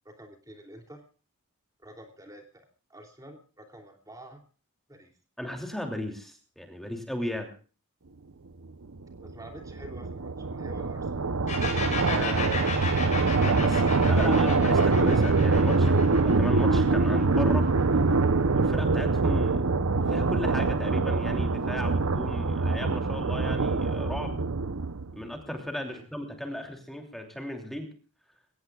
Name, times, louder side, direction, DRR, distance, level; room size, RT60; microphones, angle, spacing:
voice 1, 0.0-1.0 1.8-4.4 4.9-5.1 9.2-11.2 25.8-26.1, right 1 dB, 15° right, 3 dB, 2.9 m, -48 dB
voice 2, 5.4-7.5 12.0-12.9 13.2-17.7 18.5-19.6 20.1-24.4 25.1-27.9, left 1 dB, ahead, 3 dB, 2.9 m, -36 dB
sound 1, 9.0-25.2, right 3 dB, 85° right, 0.8 m, -24 dB
sound 2, 11.5-19.0, left 4 dB, 35° left, 8.0 m, -35 dB
22.5 x 18.5 x 2.4 m, 0.39 s
head